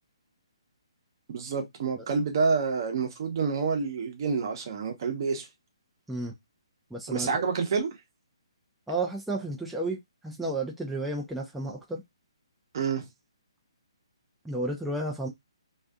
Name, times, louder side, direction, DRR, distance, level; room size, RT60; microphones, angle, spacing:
voice 1, 1.3-5.5 7.1-7.9 12.7-13.0, right 5 dB, 45° right, 0.8 m, -28 dB
voice 2, 6.9-7.4 8.9-12.0 14.4-15.3, right 2 dB, ahead, 0.4 m, -32 dB
2.4 x 2.4 x 2.3 m
figure-of-eight pair, 140°, 3 cm